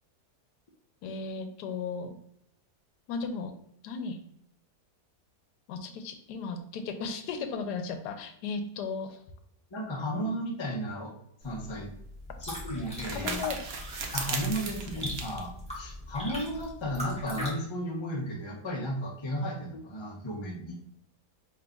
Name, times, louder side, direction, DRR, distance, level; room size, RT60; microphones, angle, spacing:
voice 1, 1.0-2.1 3.1-3.5 3.8-4.2 5.7-9.2 13.1-13.6, left 5 dB, 85° left, 7 dB, 1.2 m, -35 dB
voice 2, 9.7-11.1 11.4-11.9 12.4-13.4 14.1-20.8, equal, 40° left, -1 dB, 0.4 m, -34 dB
sound 1, 11.4-16.6, right 4 dB, 70° right, 0.5 m, -38 dB
sound 2, 12.2-17.5, left 1 dB, 5° left, 1.1 m, -40 dB
5.0 x 3.1 x 2.3 m, 0.72 s
omnidirectional pair, 1.7 m